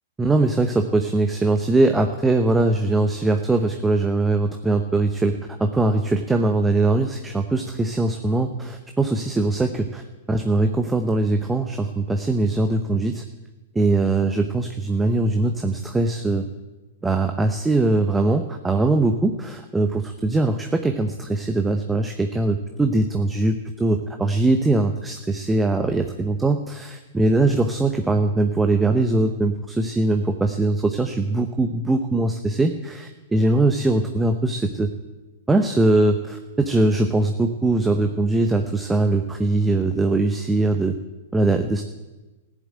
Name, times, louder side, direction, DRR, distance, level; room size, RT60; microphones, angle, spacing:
voice 1, 0.2-10.0 10.3-13.2 13.7-16.5 17.0-34.9 35.5-41.0 41.3-41.8, right 2 dB, 10° right, 6 dB, 0.9 m, -21 dB
15.0 x 7.4 x 9.0 m, 1.1 s
hypercardioid pair, 115°, 0 cm